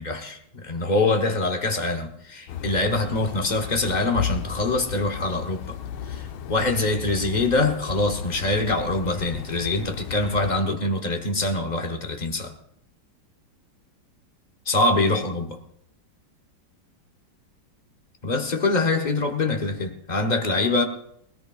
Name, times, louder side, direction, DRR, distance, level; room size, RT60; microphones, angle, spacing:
voice 1, 0.0-5.8 6.1-12.5 14.7-15.6 18.2-20.8, left 2 dB, 30° left, 0.9 m, -24 dB
sound 1, 2.5-10.5, left 9 dB, 85° left, 1.6 m, -35 dB
20.0 x 18.0 x 2.4 m
omnidirectional pair, 2.3 m